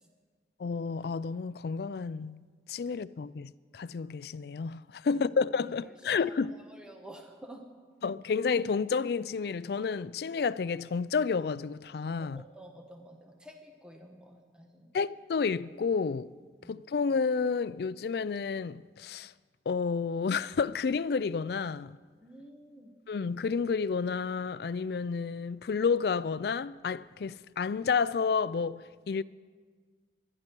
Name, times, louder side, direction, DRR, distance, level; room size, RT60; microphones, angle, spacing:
voice 1, 0.6-6.6 8.0-12.4 14.9-16.3 16.7-19.3 19.7-22.0 23.1-29.2, left 5 dB, 60° left, 0.3 m, -30 dB
voice 2, 5.8-6.3 6.7-7.6 12.2-14.9 16.6-16.8 22.2-22.9, right 1 dB, 5° right, 1.1 m, -50 dB
23.5 x 11.0 x 4.5 m
head